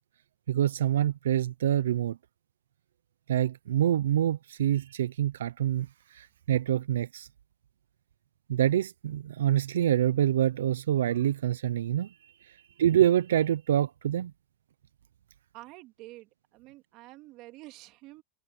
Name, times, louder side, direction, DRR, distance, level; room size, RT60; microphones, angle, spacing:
voice 1, 0.5-2.2 3.3-7.3 8.5-14.3, right 11 dB, 90° right, 0.4 m, -26 dB
voice 2, 15.5-18.2, right 19 dB, 45° right, 2.7 m, -48 dB
supercardioid pair, 135°, 0 cm